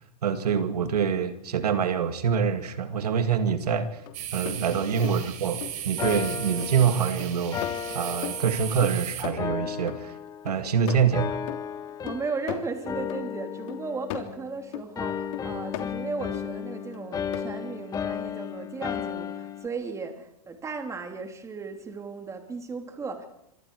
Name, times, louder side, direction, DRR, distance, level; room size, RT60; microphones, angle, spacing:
voice 1, 0.2-4.0 4.3-7.6 7.9-10.2 10.4-11.4, right 7 dB, 90° right, 9 dB, 2.2 m, -25 dB
sound 1, 3.5-3.6 4.1-6.8 7.2-10.0 10.3-14.9 15.3-16.4 16.9-17.4 17.9-18.0, left 12 dB, 55° left, 3.2 m, -38 dB
sound 2, 4.1-9.2, right 11 dB, 40° right, 4.3 m, -36 dB
sound 3, 6.0-8.9 9.4-10.7 11.1-12.5 12.8-14.6 14.9-19.7, left 8 dB, 20° left, 1.3 m, -34 dB
voice 2, 12.0-23.3, right 4 dB, 15° right, 6 dB, 3.1 m, -36 dB
25.5 x 25.0 x 4.8 m, 0.82 s
hypercardioid pair, 135°, 19 cm